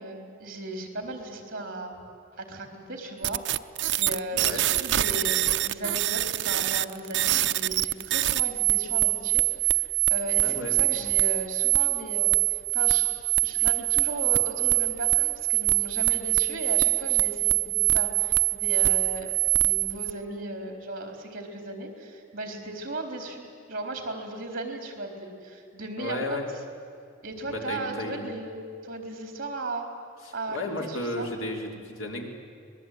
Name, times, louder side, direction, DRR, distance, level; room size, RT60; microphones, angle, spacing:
voice 1, 0.0-2.0 2.4-3.4 4.0-13.1 13.4-26.4 27.2-29.9 30.3-31.3, right 2 dB, 45° right, 4 dB, 4.0 m, -36 dB
sound 1, 3.2-20.1, right 17 dB, 60° right, 0.6 m, -24 dB
voice 2, 4.3-4.6 10.4-10.7 26.0-26.5 27.5-28.3 30.3-32.3, left 1 dB, 80° left, 2 dB, 3.8 m, -33 dB
25.5 x 20.5 x 9.4 m, 2.5 s
head